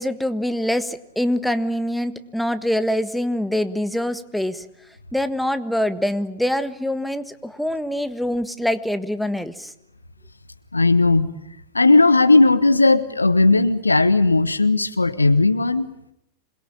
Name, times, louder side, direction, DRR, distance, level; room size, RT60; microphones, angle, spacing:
voice 1, 0.0-4.6 5.1-9.7, left 1 dB, ahead, 11 dB, 1.5 m, -24 dB
voice 2, 10.7-11.3 11.7-15.9, left 3 dB, 80° left, 13 dB, 1.3 m, -16 dB
27.0 x 22.0 x 8.9 m, 0.79 s
figure-of-eight pair, 90°, 0 cm